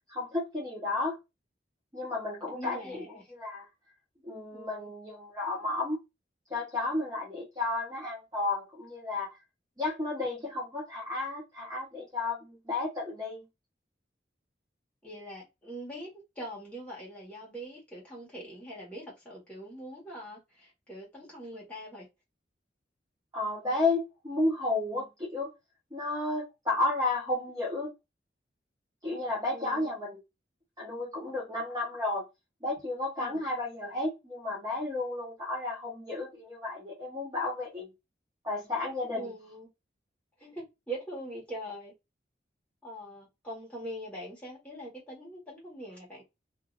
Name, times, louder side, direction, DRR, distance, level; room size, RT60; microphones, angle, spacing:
voice 1, 0.1-1.2 1.9-3.0 3.3-3.7 4.2-6.0 6.5-9.4 9.8-13.4 23.3-25.5 25.9-27.9 29.0-30.2 30.8-32.2 32.6-37.9 38.4-39.3, left 2 dB, 20° right, 1.0 m, -32 dB
voice 2, 2.5-3.2 4.5-4.9 15.0-22.1 29.5-29.9 33.2-33.4 39.1-39.7 40.4-41.9 42.8-46.2, right 1 dB, 5° left, 1.6 m, -43 dB
2.8 x 2.8 x 2.5 m
head